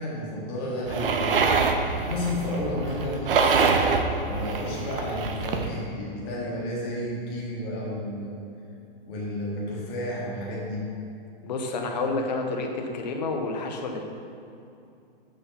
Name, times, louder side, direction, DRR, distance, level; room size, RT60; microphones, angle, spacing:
voice 1, 0.0-1.3 1.9-3.7 4.2-8.4 9.1-10.9, left 1 dB, 20° left, -5 dB, 1.4 m, -32 dB
sound 1, 0.9-5.7, right 4 dB, 70° right, 0.8 m, -25 dB
voice 2, 11.4-14.1, left 3 dB, 45° left, 2 dB, 0.9 m, -29 dB
7.5 x 6.4 x 4.0 m, 2.7 s
hypercardioid pair, 180°, 29 cm